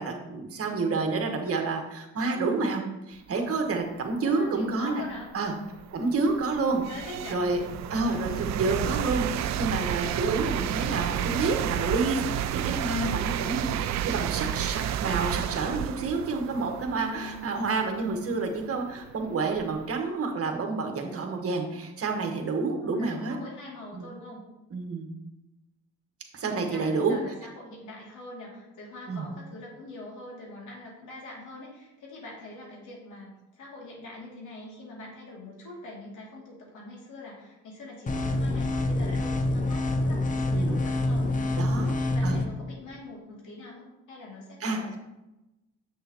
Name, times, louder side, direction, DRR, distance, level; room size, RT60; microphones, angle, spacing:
voice 1, 0.0-2.8 3.1-5.0 5.3-5.5 5.9-6.8 7.3-7.6 7.9-23.3 23.9-24.1 24.7-25.1 26.3-27.2 29.1-29.3 40.5-40.8 41.6-41.9 42.2-42.4 44.6-45.0, right 3 dB, 50° right, 3 dB, 1.5 m, -29 dB
voice 2, 4.1-5.3 6.9-7.4 17.0-17.5 22.8-24.4 26.4-45.0, left 2 dB, 75° left, -4 dB, 2.9 m, -43 dB
sound 1, 4.4-4.5 5.1-19.9, right 11 dB, 65° right, 0.4 m, -32 dB
sound 2, 38.1-42.4, left 2 dB, 25° left, 0.8 m, -26 dB
7.7 x 6.7 x 3.1 m, 0.97 s
cardioid pair, 90°, 30 cm